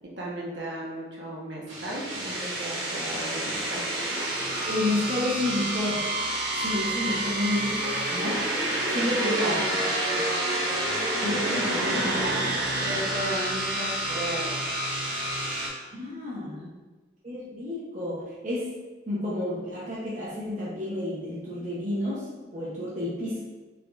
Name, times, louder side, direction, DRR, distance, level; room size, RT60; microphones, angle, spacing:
voice 1, 0.0-4.0 7.1-7.2 9.2-10.2 11.4-12.5 12.8-14.6 16.5-16.7, right 1 dB, 70° right, -4 dB, 0.9 m, -35 dB
sound 1, 1.7-15.7, right 1 dB, 85° right, 1.2 m, -28 dB
voice 2, 4.6-6.1 6.6-7.7 8.1-8.5 8.9-9.7 11.2-12.3 15.9-16.7 17.2-18.7 19.1-23.5, left 1 dB, 40° right, -7 dB, 0.7 m, -30 dB
4.0 x 3.5 x 2.3 m, 1.2 s
head